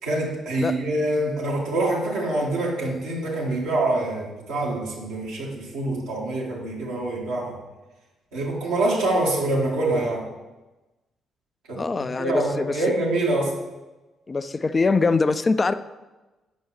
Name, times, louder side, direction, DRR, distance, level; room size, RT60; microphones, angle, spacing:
voice 1, 0.0-7.6 8.3-10.3 11.7-11.8 12.2-13.5, right 2 dB, 70° right, -5 dB, 1.8 m, -25 dB
voice 2, 11.7-12.8 14.3-15.7, left 4 dB, 30° left, 12 dB, 0.3 m, -23 dB
8.4 x 6.1 x 3.2 m, 1.1 s
figure-of-eight pair, 40°, 0 cm